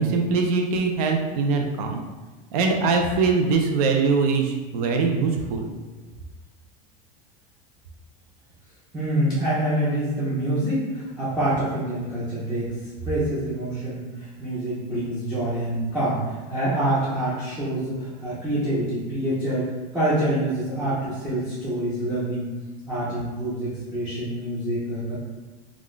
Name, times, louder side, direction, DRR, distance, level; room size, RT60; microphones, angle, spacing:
voice 1, 0.0-2.0 2.5-5.7, right 4 dB, 75° right, 3 dB, 0.5 m, -22 dB
voice 2, 8.9-12.7 13.0-22.5 22.9-25.2, right 1 dB, 5° right, -11 dB, 0.4 m, -26 dB
2.4 x 2.3 x 3.6 m, 1.2 s
supercardioid pair, 170°, 20 cm